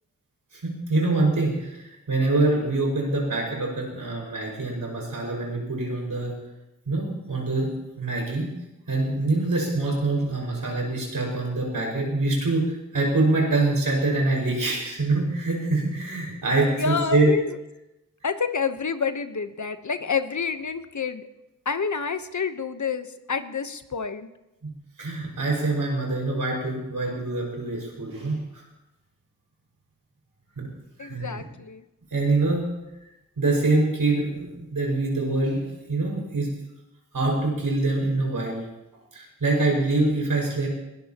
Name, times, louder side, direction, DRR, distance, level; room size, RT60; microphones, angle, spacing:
voice 1, 0.5-6.3 6.9-8.5 8.9-17.3 24.6-24.7 25.0-28.6 30.6-30.7 31.0-31.4 32.1-32.7 33.4-36.5 37.1-38.6 39.1-40.7, right 2 dB, 85° right, -2 dB, 5.7 m, -25 dB
voice 2, 16.7-17.5 18.2-21.3 21.6-24.3 31.0-31.8, left 5 dB, 60° left, 9 dB, 1.1 m, -28 dB
21.0 x 18.0 x 3.0 m, 0.95 s
cardioid pair, 40°, 33 cm